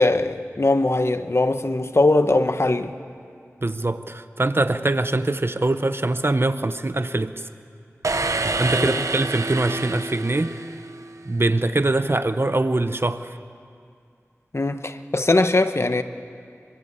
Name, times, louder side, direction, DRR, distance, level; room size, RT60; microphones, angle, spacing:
voice 1, 0.0-2.9 8.7-9.0 14.5-16.0, left 2 dB, 55° left, 9 dB, 1.1 m, -20 dB
voice 2, 3.6-7.3 8.4-10.6 11.3-13.3, right 2 dB, 50° right, 11 dB, 0.8 m, -23 dB
sound 1, 8.0-11.2, right 3 dB, 80° right, 0.9 m, -27 dB
25.0 x 24.0 x 8.3 m, 2.3 s
wide cardioid pair, 45°, 5 cm